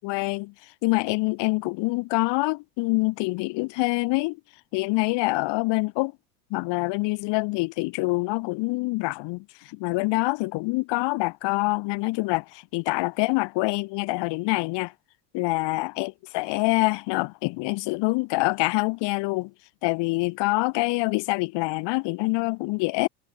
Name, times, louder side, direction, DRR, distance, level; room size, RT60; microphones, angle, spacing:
voice 1, 0.0-0.5 0.8-4.4 4.7-6.1 6.5-14.9 15.3-19.5 19.8-23.1, left 25 dB, 60° left, 3.1 m, -25 dB
hypercardioid pair, 90°, 49 cm